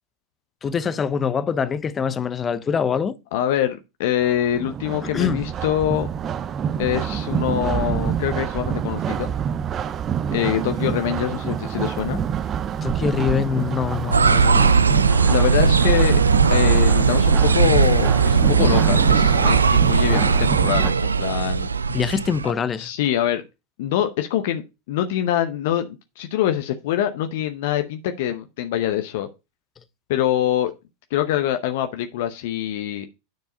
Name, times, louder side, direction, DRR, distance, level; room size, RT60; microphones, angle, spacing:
voice 1, 0.6-3.2 5.1-5.4 12.8-14.6 21.9-22.9, left 7 dB, 25° left, 0.8 m, -24 dB
voice 2, 3.3-6.1 6.8-9.3 10.3-12.3 15.3-16.2 16.5-21.7 22.8-23.4 23.8-24.6 24.9-25.9 26.2-29.3 30.1-30.7 31.1-33.1, left 11 dB, 60° left, 0.8 m, -24 dB
sound 1, 4.2-20.9, right 8 dB, 30° right, 0.6 m, -27 dB
sound 2, 14.1-22.5, right 5 dB, 85° right, 0.4 m, -18 dB
9.5 x 4.6 x 5.4 m
figure-of-eight pair, 90°, 0 cm